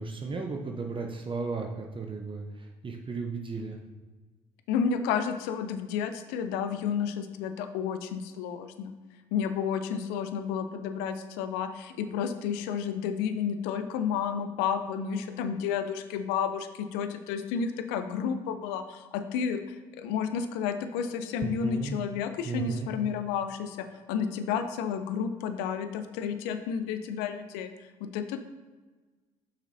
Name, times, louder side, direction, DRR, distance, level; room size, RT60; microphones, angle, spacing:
voice 1, 0.0-3.8 21.4-22.0 22.4-22.9, right 4 dB, 30° right, 2 dB, 0.8 m, -34 dB
voice 2, 4.7-8.9 9.3-27.7 28.0-28.5, left 7 dB, 75° left, 9 dB, 0.5 m, -31 dB
8.2 x 6.0 x 2.7 m, 1.3 s
hypercardioid pair, 60°, 17 cm